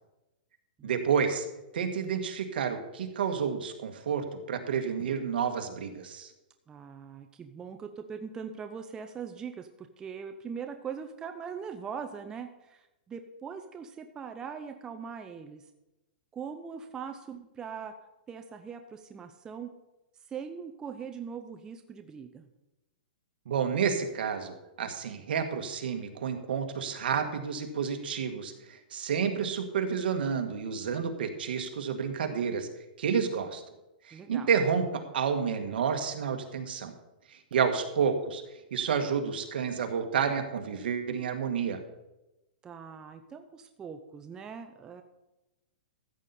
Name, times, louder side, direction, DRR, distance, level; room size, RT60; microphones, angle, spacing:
voice 1, 0.8-1.5 1.7-6.3 23.5-32.7 33.0-33.6 34.0-36.9 37.3-38.4 38.7-41.8, right 6 dB, 70° right, 5 dB, 1.7 m, -30 dB
voice 2, 6.7-15.6 16.3-17.9 18.3-19.7 20.3-22.5 34.1-34.5 42.6-45.0, right 6 dB, 15° right, 6 dB, 0.6 m, -41 dB
14.0 x 8.1 x 4.3 m, 0.97 s
hypercardioid pair, 155°, 6 cm